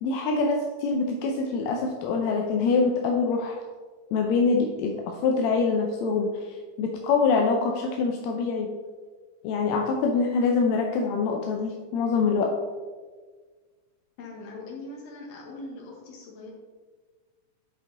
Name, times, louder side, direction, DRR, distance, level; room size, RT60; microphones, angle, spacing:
voice 1, 0.0-3.6 4.1-8.7 9.4-12.5, left 4 dB, 75° left, 2 dB, 1.7 m, -25 dB
voice 2, 14.2-16.5, left 2 dB, 60° left, -1 dB, 2.4 m, -41 dB
7.8 x 5.1 x 3.8 m, 1.5 s
omnidirectional pair, 3.5 m